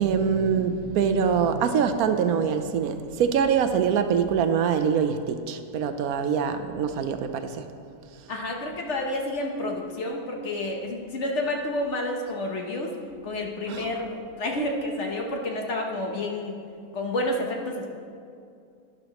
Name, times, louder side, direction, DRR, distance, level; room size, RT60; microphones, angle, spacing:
voice 1, 0.0-7.7 13.7-13.9, right 7 dB, 75° right, 8 dB, 1.1 m, -24 dB
voice 2, 8.3-12.9 13.2-16.5 16.9-17.9, left 1 dB, 55° left, 1 dB, 1.3 m, -29 dB
12.0 x 10.5 x 3.0 m, 2.4 s
omnidirectional pair, 1.6 m